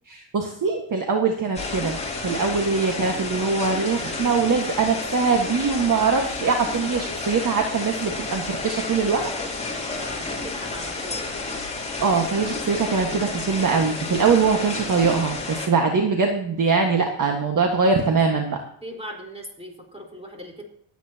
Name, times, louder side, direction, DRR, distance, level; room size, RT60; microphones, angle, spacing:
voice 1, 0.1-9.2 12.0-18.6, right 5 dB, 40° right, 3 dB, 1.6 m, -22 dB
sound 1, 1.5-15.7, left 3 dB, 15° left, 3.3 m, -31 dB
voice 2, 10.0-11.3 18.8-20.6, equal, 10° right, 1 dB, 4.3 m, -39 dB
26.0 x 9.1 x 2.9 m, 0.70 s
cardioid pair, 120°, 50 cm